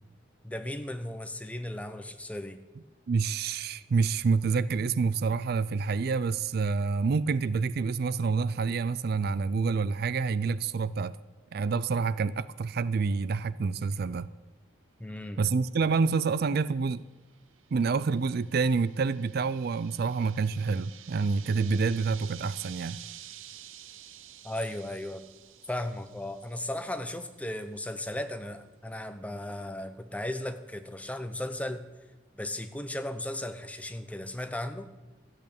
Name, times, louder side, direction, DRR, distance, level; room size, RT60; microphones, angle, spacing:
voice 1, 0.4-2.6 15.0-15.4 24.4-25.2 25.7-31.8 32.4-34.9, left 1 dB, 5° left, 0.8 m, -36 dB
voice 2, 3.1-11.2 11.5-14.3 15.4-17.0 17.7-23.0, right 4 dB, 50° right, 0.4 m, -27 dB
sound 1, 17.3-27.1, right 12 dB, 90° right, 0.7 m, -50 dB
13.5 x 8.6 x 8.6 m
head